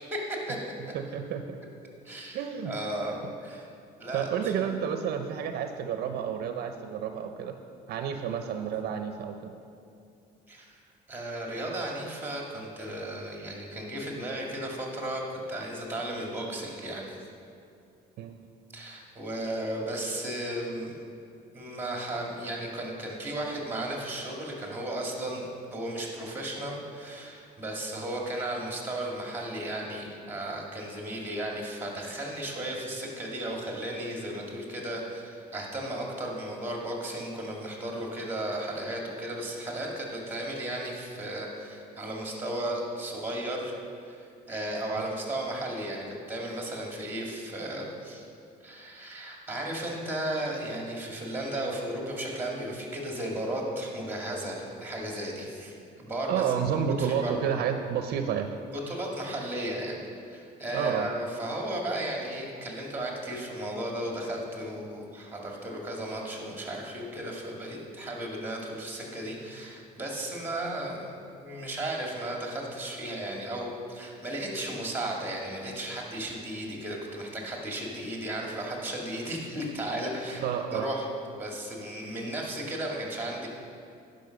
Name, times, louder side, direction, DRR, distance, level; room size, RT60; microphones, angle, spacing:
voice 1, 0.1-0.6 2.0-2.4 2.6-3.7 4.0-4.5 10.5-10.8 11.1-17.2 18.7-21.0 21.5-43.7 44.0-48.3 48.6-56.4 57.0-57.4 58.6-60.0 60.3-71.1 71.4-80.4 80.7-81.0 81.4-83.5, right 1 dB, 10° right, -1 dB, 2.2 m, -35 dB
voice 2, 0.9-1.6 2.3-2.7 4.1-7.5 7.9-9.6 18.2-18.4 45.0-45.1 56.3-58.5 60.7-61.1 80.4-80.9, right 8 dB, 70° right, 6 dB, 0.6 m, -30 dB
10.5 x 5.4 x 6.5 m, 2.5 s
cardioid pair, 110°, 17 cm